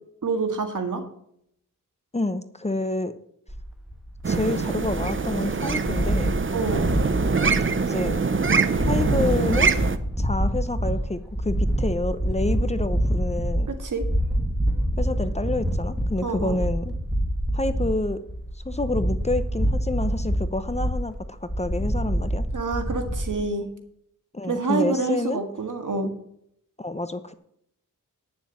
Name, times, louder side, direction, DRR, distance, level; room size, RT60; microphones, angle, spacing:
voice 1, 0.2-1.0 6.5-6.9 13.7-14.1 16.2-16.6 22.5-23.7 24.5-26.1, right 4 dB, 70° right, 5 dB, 1.9 m, -27 dB
voice 2, 2.1-3.1 4.2-6.3 7.8-8.2 8.8-9.7 10.2-13.7 15.0-16.9 17.5-18.2 18.5-22.5 24.3-25.4 26.8-27.3, left 2 dB, 20° left, 10 dB, 0.8 m, -28 dB
sound 1, 3.5-23.3, equal, ahead, 1.6 m, -26 dB
sound 2, 4.2-10.0, right 5 dB, 40° right, 0.8 m, -24 dB
9.7 x 7.1 x 7.3 m, 0.70 s
wide cardioid pair, 100°, 33 cm